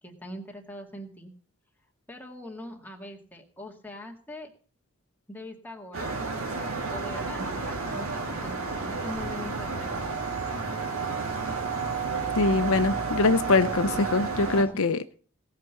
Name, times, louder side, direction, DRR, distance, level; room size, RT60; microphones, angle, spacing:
voice 1, 0.0-1.3 2.1-4.5 5.3-6.3 6.9-10.3 14.4-14.8, left 1 dB, 10° left, 2.0 m, -42 dB
sound 1, 5.9-14.6, right 4 dB, 85° right, 2.5 m, -31 dB
voice 2, 12.4-15.0, left 3 dB, 80° left, 0.7 m, -23 dB
17.5 x 6.0 x 6.8 m
head